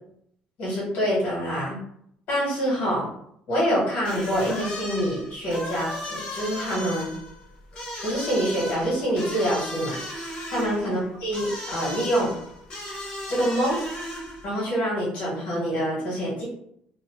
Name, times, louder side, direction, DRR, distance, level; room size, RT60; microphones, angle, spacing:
voice 1, 0.6-1.8 2.3-3.1 3.5-7.1 8.0-10.0 10.5-12.3 13.3-13.8 14.4-16.4, equal, 60° left, -5 dB, 1.5 m, -26 dB
sound 1, 4.0-14.5, left 1 dB, 35° left, 0.8 m, -36 dB
2.7 x 2.1 x 3.0 m, 0.70 s
cardioid pair, 170°, 3 cm